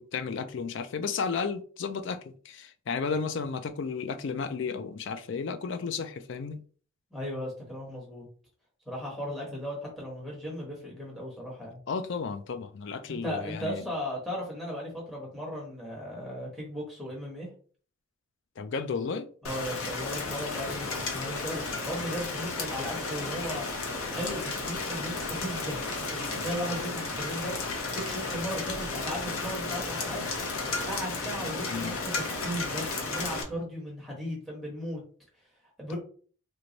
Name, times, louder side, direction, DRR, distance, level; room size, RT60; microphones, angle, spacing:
voice 1, 0.0-6.6 11.9-13.8 18.6-19.3 31.7-31.9 35.9-36.0, left 5 dB, 55° left, 0.4 m, -33 dB
voice 2, 7.1-8.2 8.8-11.8 13.1-17.5 19.4-23.7 24.1-30.2 30.9-35.0 35.8-36.0, equal, ahead, 1.2 m, -36 dB
Rain, 19.4-33.4, left 3 dB, 75° left, 0.8 m, -33 dB
3.1 x 2.2 x 3.9 m
head